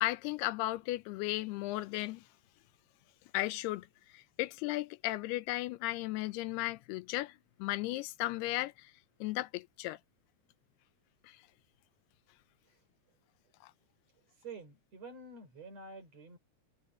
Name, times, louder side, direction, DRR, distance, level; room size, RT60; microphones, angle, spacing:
voice 1, 0.0-2.2 3.3-3.9 4.1-8.9 9.2-10.0 11.2-11.4 13.6-13.7, left 17 dB, 85° left, 2.7 m, -35 dB
voice 2, 14.4-16.4, right 3 dB, 40° right, 5.8 m, -48 dB
omnidirectional pair, 4.6 m